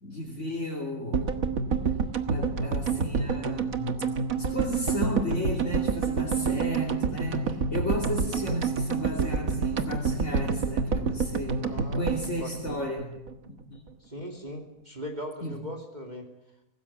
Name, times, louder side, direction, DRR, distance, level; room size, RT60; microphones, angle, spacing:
voice 1, 0.0-1.4 2.3-4.1 4.4-13.1 13.5-13.8 15.4-15.6, left 1 dB, 45° left, -2 dB, 3.3 m, -34 dB
sound 1, 1.1-13.4 13.6-13.7 13.9-14.0, right 5 dB, 60° right, 1.8 m, -28 dB
voice 2, 11.6-12.1 12.4-12.8 14.0-16.3, equal, 25° right, 2 dB, 2.8 m, -39 dB
24.5 x 19.0 x 8.7 m, 0.83 s
omnidirectional pair, 1.7 m